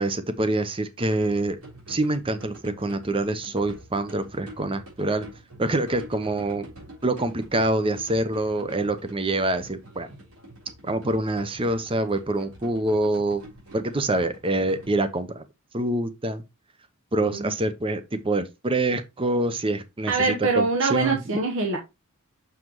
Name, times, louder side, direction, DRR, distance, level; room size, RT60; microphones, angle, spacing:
voice 1, 0.0-1.6 1.9-5.3 5.6-6.7 7.0-10.1 10.9-13.4 13.7-15.4 15.7-16.4 17.1-21.2, right 2 dB, 25° right, 0.7 m, -26 dB
sound 1, 1.0-14.8, right 1 dB, 85° right, 3.6 m, -46 dB
voice 2, 17.2-17.5 20.1-21.8, right 3 dB, 65° right, 1.0 m, -24 dB
6.4 x 5.7 x 3.0 m
head